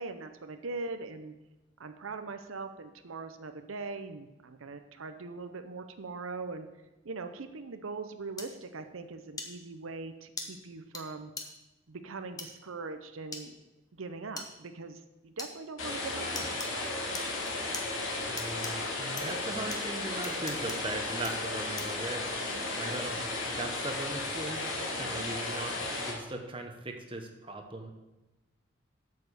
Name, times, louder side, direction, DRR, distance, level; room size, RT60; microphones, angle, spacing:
voice 1, 0.0-1.3 1.8-6.7 7.0-11.3 11.9-13.5 13.9-16.9 22.5-22.8 25.0-25.3, right 3 dB, 85° right, 8 dB, 0.7 m, -41 dB
sound 1, 8.4-8.5 9.4-9.5 10.4-10.5 10.9-11.0 11.4-11.5 12.4-12.5 13.3-13.4 14.4-14.5 15.4-15.5 16.3-16.7 17.1-17.8 18.4-18.7 19.2-19.3 19.7-19.8 20.2-20.8 21.2-21.3 21.8-22.0, left 3 dB, 20° left, 1.0 m, -39 dB
sound 2, 15.8-26.1, left 2 dB, 85° left, 2.4 m, -34 dB
voice 2, 18.3-27.9, right 2 dB, 25° right, 4 dB, 1.0 m, -39 dB
8.6 x 6.8 x 6.7 m, 1.1 s
head